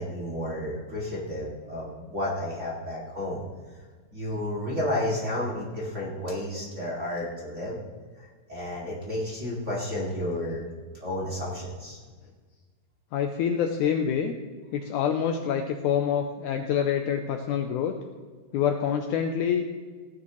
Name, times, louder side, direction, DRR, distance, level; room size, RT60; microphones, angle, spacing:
voice 1, 0.0-3.4 4.1-7.8 8.2-10.6 11.0-12.0, left 1 dB, 25° right, -6 dB, 2.1 m, -31 dB
voice 2, 10.0-10.4 13.1-14.3 14.7-17.9 18.5-19.7, left 8 dB, 85° left, 4 dB, 1.7 m, -26 dB
17.0 x 9.8 x 3.1 m, 1.5 s
omnidirectional pair, 4.3 m